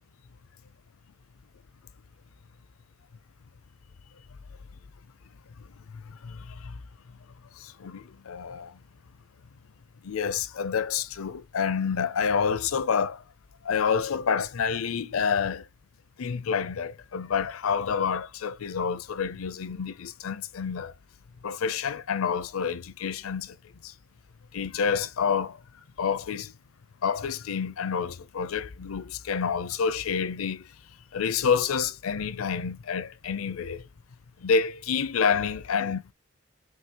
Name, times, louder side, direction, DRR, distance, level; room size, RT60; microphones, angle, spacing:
voice 1, 5.9-6.8 7.6-8.8 10.0-13.2 13.6-15.6 16.2-20.9 21.4-23.6 23.8-23.9 24.5-25.6 26.0-26.5 27.0-30.6 31.1-33.8 34.4-36.1, left 6 dB, 90° left, 0.5 m, -28 dB
5.5 x 3.1 x 2.9 m
head